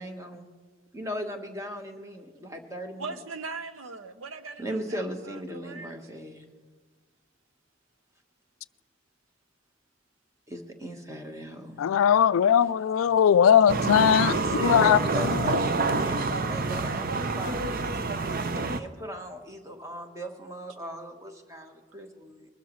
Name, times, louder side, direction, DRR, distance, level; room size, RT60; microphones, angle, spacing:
voice 1, 0.0-0.5 0.9-3.1 4.6-6.5 10.5-11.9 14.3-17.7 18.5-22.5, equal, 15° right, 1.2 m, -37 dB
voice 2, 3.0-6.0, right 4 dB, 75° right, 0.8 m, -40 dB
voice 3, 11.8-14.3 14.6-15.0 15.3-15.5, left 8 dB, 75° left, 0.3 m, -20 dB
sound 1, 13.7-18.8, right 3 dB, 45° right, 0.6 m, -27 dB
22.0 x 13.0 x 3.1 m
head